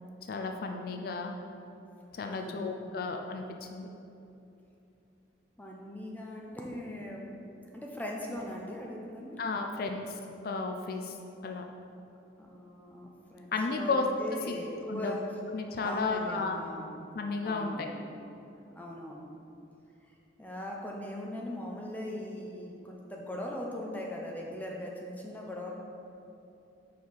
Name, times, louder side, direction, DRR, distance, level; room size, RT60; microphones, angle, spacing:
voice 1, 0.3-1.3 2.1-3.9 9.4-10.1 10.4-11.2 11.4-11.6 13.5-14.1 14.5-14.6 14.9-15.2 15.5-16.6 17.1-17.9, left 4 dB, 55° left, 3 dB, 0.4 m, -33 dB
voice 2, 2.3-2.9 5.6-7.4 7.7-9.4 12.4-15.2 15.8-18.2 18.8-19.3 20.1-25.7, left 1 dB, 10° left, -2 dB, 0.6 m, -40 dB
4.7 x 4.5 x 5.4 m, 2.8 s
head